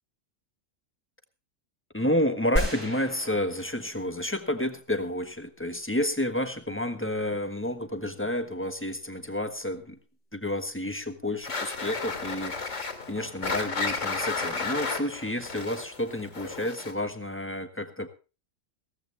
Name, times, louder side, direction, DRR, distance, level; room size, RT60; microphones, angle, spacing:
voice 1, 1.9-10.0 10.3-18.1, left 1 dB, 10° left, 8 dB, 1.2 m, -30 dB
sound 1, 2.6-4.8, equal, 35° right, 6.5 m, -33 dB
sound 2, 11.4-17.1, left 4 dB, 80° left, 3.0 m, -33 dB
17.0 x 14.5 x 3.3 m, 0.33 s
omnidirectional pair, 1.3 m